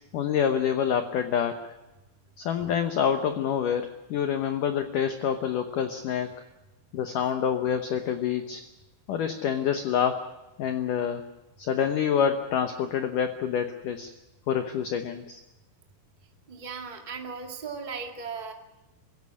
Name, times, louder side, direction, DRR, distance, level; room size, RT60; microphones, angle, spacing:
voice 1, 0.1-1.6 2.4-6.3 6.9-8.6 9.1-10.3 10.6-11.2 11.6-14.1 14.5-15.4, left 8 dB, 70° left, 7 dB, 2.1 m, -27 dB
voice 2, 16.5-18.5, right 5 dB, 45° right, 3 dB, 0.5 m, -37 dB
23.5 x 16.5 x 9.7 m, 0.99 s
omnidirectional pair, 5.0 m